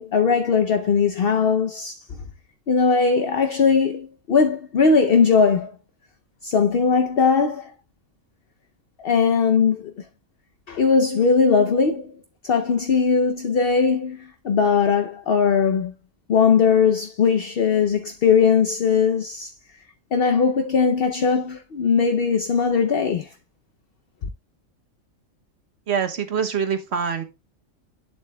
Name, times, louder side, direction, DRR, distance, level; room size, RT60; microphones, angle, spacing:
voice 1, 0.0-2.0 2.7-5.7 6.4-7.7 9.0-9.9 10.7-12.1 12.4-15.9 16.3-19.5 20.1-23.3, left 5 dB, 55° left, 0.8 m, -19 dB
voice 2, 25.9-27.2, right 7 dB, 55° right, 1.4 m, -24 dB
8.4 x 7.5 x 2.2 m
omnidirectional pair, 1.4 m